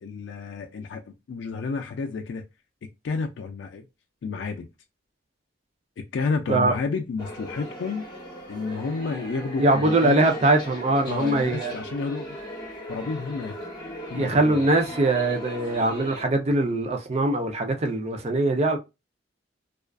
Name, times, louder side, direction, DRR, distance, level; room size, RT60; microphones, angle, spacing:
voice 1, 0.0-2.5 3.0-3.8 4.2-4.7 6.1-8.0 8.5-10.3 11.1-12.4 12.9-13.6 14.1-14.7, left 4 dB, 70° left, 0.3 m, -31 dB
sound 1, 7.2-16.2, equal, 25° left, 0.9 m, -38 dB
voice 2, 9.6-11.7 14.2-18.8, right 2 dB, 35° right, 0.4 m, -22 dB
2.3 x 2.3 x 2.2 m
head